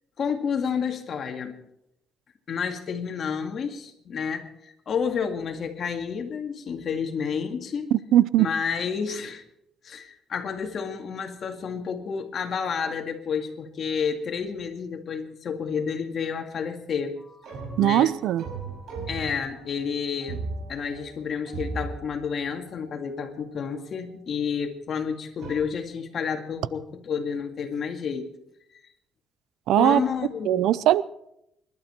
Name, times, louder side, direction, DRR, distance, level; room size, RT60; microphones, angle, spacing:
voice 1, 0.2-1.5 2.5-8.0 8.4-9.4 9.8-17.2 17.8-18.2 19.1-20.4 20.7-28.3 29.8-30.7, left 6 dB, 50° left, 5 dB, 2.1 m, -30 dB
voice 2, 7.9-8.5 17.8-18.4 29.7-30.0 30.5-31.0, right 13 dB, 90° right, 19 dB, 0.5 m, -20 dB
sound 1, 17.2-24.1 25.4-25.5, right 3 dB, 70° right, 5.4 m, -38 dB
26.0 x 12.0 x 4.5 m, 0.80 s
cardioid pair, 115°, 0 cm